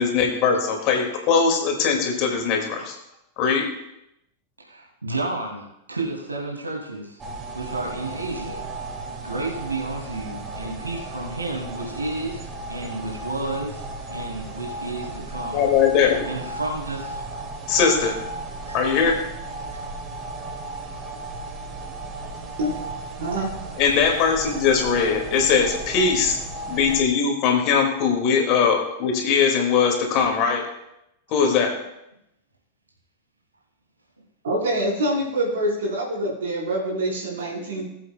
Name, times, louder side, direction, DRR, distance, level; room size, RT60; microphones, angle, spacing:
voice 1, 0.0-3.0 3.4-3.7 15.5-16.3 17.7-18.1 18.7-19.2 23.8-26.4 26.7-30.7 31.3-31.7 37.7-37.9, left 6 dB, 40° left, 2 dB, 2.2 m, -20 dB
voice 2, 4.6-7.2 7.5-8.6 9.2-13.8 14.1-15.7 16.2-17.2 18.7-18.8 26.5-26.6, right 2 dB, 80° right, -1 dB, 2.4 m, -31 dB
sound 1, 7.2-27.0, right 2 dB, 25° right, 1.7 m, -35 dB
voice 3, 23.2-23.5 34.4-37.9, right 1 dB, 60° right, -3 dB, 4.3 m, -25 dB
19.5 x 7.8 x 2.3 m, 0.84 s
figure-of-eight pair, 90°, 0 cm